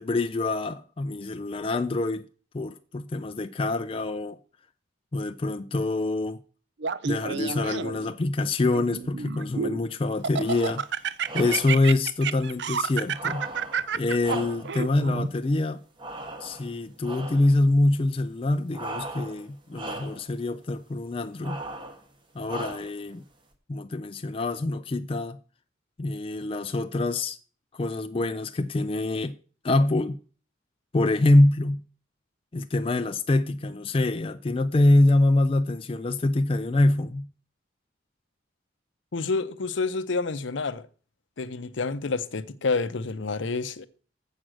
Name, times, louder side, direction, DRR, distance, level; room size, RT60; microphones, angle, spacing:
voice 1, 0.0-2.2 2.5-4.4 5.1-6.4 7.0-11.0 11.3-13.5 13.9-15.8 16.4-21.6 22.3-23.2 23.7-25.4 26.0-27.4 27.7-29.3 29.6-30.2 30.9-31.8 32.5-37.3, left 2 dB, 30° left, 0.4 m, -25 dB
Laughter, 6.8-8.1 8.7-9.8 10.2-15.3, right 6 dB, 60° right, 0.5 m, -30 dB
sound 1, 10.3-10.9 11.2-11.9 13.1-14.9 16.0-16.7 17.0-17.5 18.7-19.5 19.7-20.3 21.4-22.0 22.5-23.1, right 2 dB, 25° right, 1.1 m, -38 dB
voice 2, 39.1-40.9 41.4-43.9, left 4 dB, 70° left, 0.6 m, -28 dB
7.3 x 6.3 x 7.7 m
head